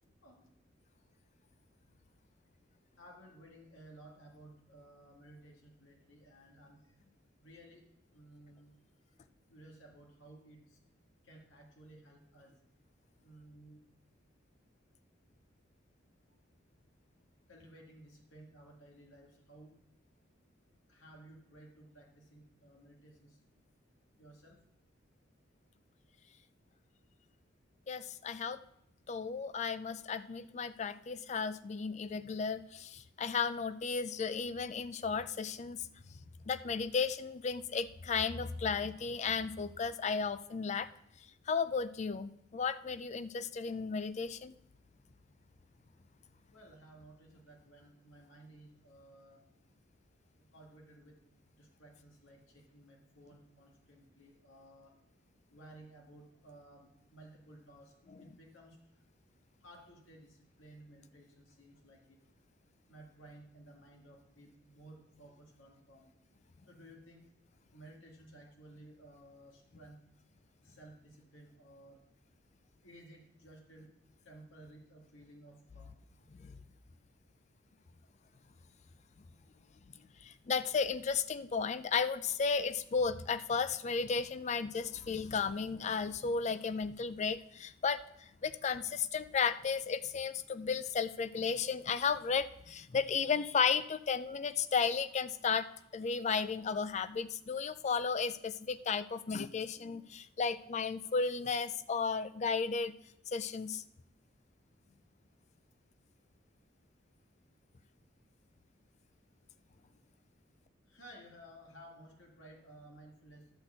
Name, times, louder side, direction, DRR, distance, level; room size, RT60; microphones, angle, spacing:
voice 1, 3.0-6.8 7.4-7.8 8.1-8.7 9.5-10.8 11.2-12.5 13.2-13.8 17.5-19.7 20.9-23.4 24.2-24.6 46.5-49.4 50.5-51.2 51.6-54.9 55.5-58.8 59.6-62.2 62.9-66.1 66.7-67.2 67.7-70.0 70.6-72.0 72.8-73.9 74.3-75.9 110.9-113.6, right 1 dB, 85° left, 0 dB, 1.8 m, -56 dB
voice 2, 27.9-28.6 29.1-35.8 36.5-40.9 41.5-44.6 58.2-58.3 76.4-76.6 80.2-95.7 95.9-102.9 103.3-103.8, left 5 dB, 35° left, 14 dB, 0.4 m, -34 dB
11.5 x 4.2 x 7.7 m, 0.76 s
head